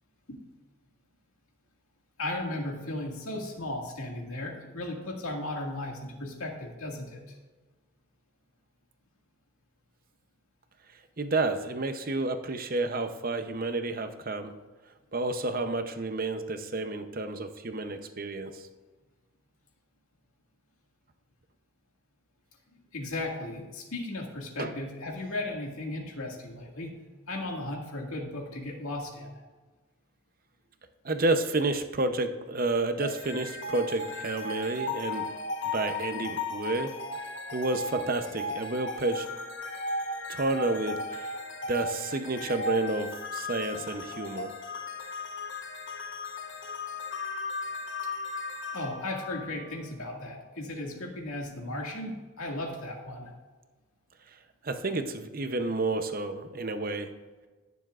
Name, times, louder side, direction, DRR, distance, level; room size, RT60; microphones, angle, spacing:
voice 1, 2.2-7.4 22.9-26.9 27.3-29.4 48.7-53.3, left 2 dB, 80° left, 0 dB, 2.0 m, -36 dB
voice 2, 11.2-14.5 15.1-18.6 24.6-24.7 31.0-35.3 35.7-36.9 37.5-39.3 40.3-41.3 41.7-44.5 54.6-57.1, right 2 dB, 40° right, 7 dB, 0.7 m, -30 dB
sound 1, 33.0-50.1, left 2 dB, 55° left, 1.1 m, -36 dB
17.5 x 7.0 x 2.5 m, 1.3 s
head